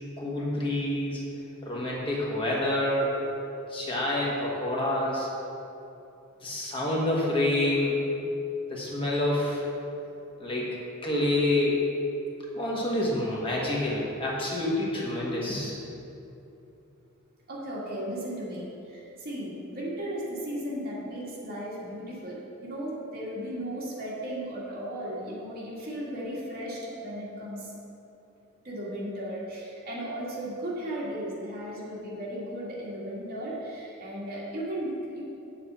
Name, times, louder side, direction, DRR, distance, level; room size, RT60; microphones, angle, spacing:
voice 1, 0.2-1.2 1.6-3.2 3.7-5.3 6.4-8.0 8.7-9.6 10.4-10.8 11.0-11.9 12.5-15.7, left 1 dB, 25° left, -4 dB, 1.4 m, -27 dB
voice 2, 17.5-27.7 28.6-35.2, equal, 45° right, -6 dB, 2.2 m, -35 dB
8.7 x 7.3 x 4.3 m, 2.8 s
head